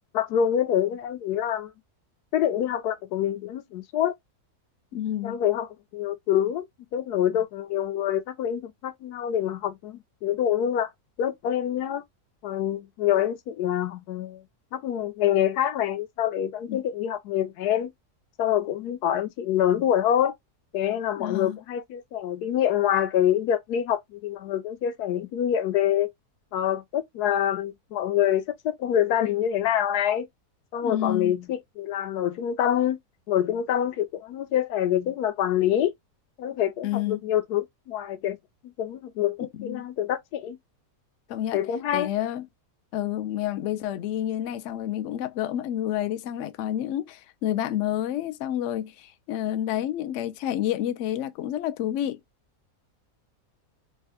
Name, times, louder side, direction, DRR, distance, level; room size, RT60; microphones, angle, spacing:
voice 1, 0.1-1.7 2.3-4.2 5.2-6.7 6.9-10.9 11.2-12.0 12.4-14.4 14.7-17.9 18.4-20.3 20.7-26.1 26.5-30.3 30.7-33.0 33.3-35.9 36.4-38.4 38.6-40.6 41.5-42.1, left 10 dB, 85° left, 1.2 m, -26 dB
voice 2, 4.9-5.4 16.7-16.8 21.2-21.6 30.8-31.4 36.8-37.2 39.6-39.8 41.3-41.6 41.9-42.5 42.9-52.2, left 11 dB, 70° left, 0.7 m, -29 dB
3.5 x 2.2 x 3.4 m
omnidirectional pair, 1.7 m